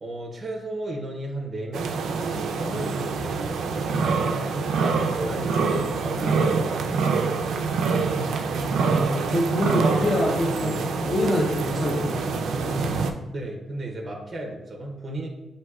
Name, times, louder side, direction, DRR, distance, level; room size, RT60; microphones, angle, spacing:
voice 1, 0.0-2.9 3.2-3.4 3.6-5.5 6.0-7.3 13.3-15.3, right 1 dB, 20° right, 0 dB, 0.6 m, -34 dB
sound 1, 1.7-13.1, right 4 dB, 80° right, 0.4 m, -25 dB
voice 2, 8.5-13.0, left 1 dB, 20° left, -5 dB, 0.6 m, -27 dB
7.3 x 2.7 x 2.3 m, 1.0 s
wide cardioid pair, 175°, 0 cm